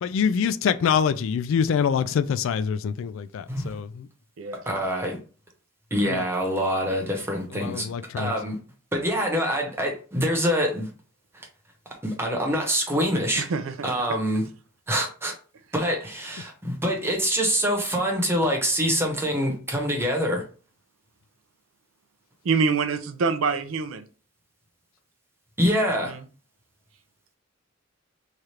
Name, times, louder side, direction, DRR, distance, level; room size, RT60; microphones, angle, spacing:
voice 1, 0.0-4.1 6.1-6.2 7.5-8.3, left 7 dB, 70° left, 0.3 m, -25 dB
voice 2, 4.7-5.2 5.9-7.8 8.2-8.5 8.9-10.9 12.0-13.5 13.8-14.4 14.9-15.3 15.7-20.4 25.6-26.1, equal, 10° right, 1.0 m, -25 dB
voice 3, 13.4-13.9 22.4-24.0 26.1-26.2, right 5 dB, 70° right, 0.5 m, -25 dB
3.2 x 2.4 x 4.3 m
head